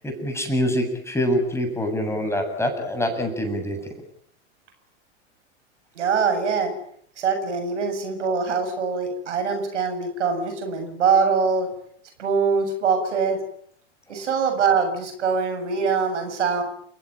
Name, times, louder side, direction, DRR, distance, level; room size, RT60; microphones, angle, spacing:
voice 1, 0.0-3.9 14.1-14.2, equal, 5° left, 4 dB, 7.8 m, -25 dB
voice 2, 6.0-6.7 7.2-11.7 12.2-13.4 14.1-16.6, right 5 dB, 75° right, 7 dB, 7.3 m, -23 dB
29.5 x 16.5 x 9.1 m, 0.64 s
hypercardioid pair, 95°, 36 cm